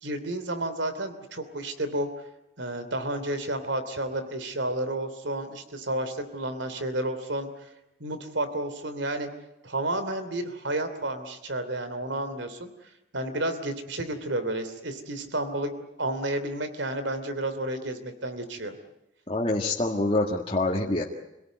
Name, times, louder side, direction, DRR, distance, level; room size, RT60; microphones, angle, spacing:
voice 1, 0.0-2.1 2.6-7.5 8.0-9.3 9.6-12.7 13.1-15.7 16.0-18.7, right 1 dB, 70° right, 10 dB, 3.0 m, -31 dB
voice 2, 19.3-21.0, left 2 dB, 30° left, -2 dB, 1.9 m, -26 dB
27.0 x 17.5 x 9.3 m, 0.90 s
head